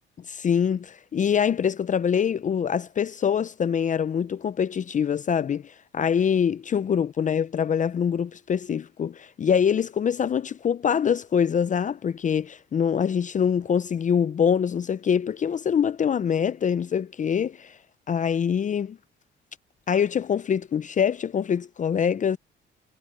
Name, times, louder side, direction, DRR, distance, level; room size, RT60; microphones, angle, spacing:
voice 1, 0.3-17.8 18.1-19.0 19.9-22.4, left 7 dB, 40° left, 0.5 m, -24 dB
cardioid pair, 90°, 20 cm